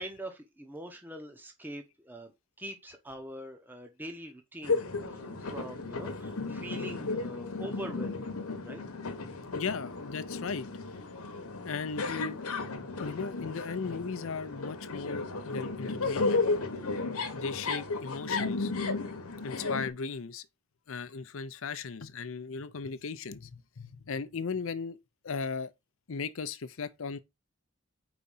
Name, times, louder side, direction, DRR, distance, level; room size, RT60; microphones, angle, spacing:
voice 1, 0.0-8.4 8.6-8.8, equal, 10° right, 0.8 m, -43 dB
sound 1, 4.6-19.9, left 3 dB, 85° left, 1.1 m, -34 dB
voice 2, 9.5-10.7 11.6-12.4 13.0-16.5 17.3-18.7 19.4-20.5 20.9-25.7 26.1-27.2, left 5 dB, 65° left, 0.6 m, -37 dB
4.9 x 4.1 x 5.5 m
head